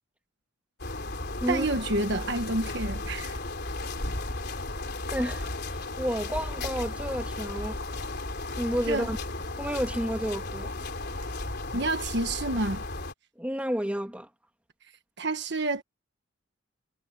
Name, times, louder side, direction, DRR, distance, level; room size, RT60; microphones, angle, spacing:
sound 1, 0.8-13.1, left 2 dB, 50° left, 3.8 m, -35 dB
voice 1, 1.5-3.4 8.9-9.1 11.7-12.8 15.2-15.8, right 2 dB, 55° right, 1.4 m, -29 dB
voice 2, 5.1-7.8 8.6-9.2 9.6-10.7 13.4-14.3, equal, 5° right, 2.5 m, -31 dB
head